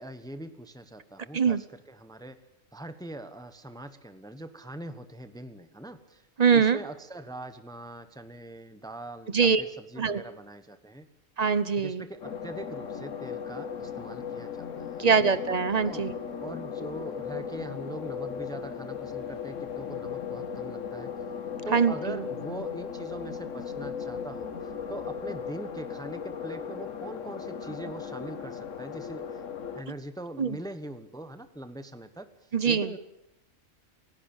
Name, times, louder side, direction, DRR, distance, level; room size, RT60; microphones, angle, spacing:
voice 1, 0.0-2.4 2.7-6.3 6.5-11.1 11.8-15.2 15.8-16.1 16.4-21.1 21.6-29.4 29.7-33.0, right 1 dB, 5° left, 9 dB, 1.1 m, -42 dB
voice 2, 6.4-6.8 9.3-9.6 10.0-10.2 11.4-12.0 15.0-16.1 21.7-22.2 30.4-30.6 32.5-32.9, right 6 dB, 35° right, 15 dB, 0.8 m, -23 dB
sound 1, 12.2-29.8, left 7 dB, 65° left, 1.4 m, -37 dB
29.0 x 16.5 x 7.3 m, 0.88 s
omnidirectional pair, 1.4 m